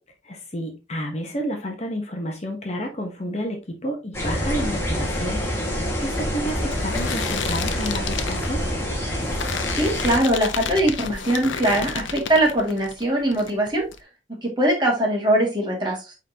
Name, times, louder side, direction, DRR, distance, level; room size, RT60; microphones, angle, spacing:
voice 1, 0.3-8.6, equal, 35° left, 1.0 m, -30 dB
sound 1, 4.1-10.2, equal, 15° left, 1.7 m, -26 dB
sound 2, 5.3-13.0 13.3-14.0, left 6 dB, 80° left, 0.8 m, -32 dB
voice 2, 9.8-13.8 14.4-16.0, right 1 dB, 25° right, 2.2 m, -21 dB
9.0 x 3.8 x 2.8 m
head